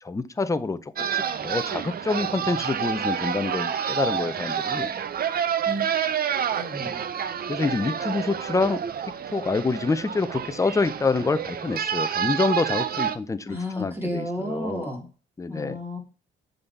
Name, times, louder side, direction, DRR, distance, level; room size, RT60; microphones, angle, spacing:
voice 1, 0.0-4.9 7.5-8.8 9.3-14.9 15.4-15.8, left 3 dB, 15° left, 13 dB, 0.6 m, -27 dB
sound 1, 1.0-13.2, right 8 dB, 50° right, 0.7 m, -28 dB
voice 2, 6.5-7.1 13.5-15.1 15.5-16.0, left 1 dB, 10° right, -1 dB, 3.2 m, -32 dB
7.6 x 4.1 x 4.4 m, 0.36 s
cardioid pair, 90°, 20 cm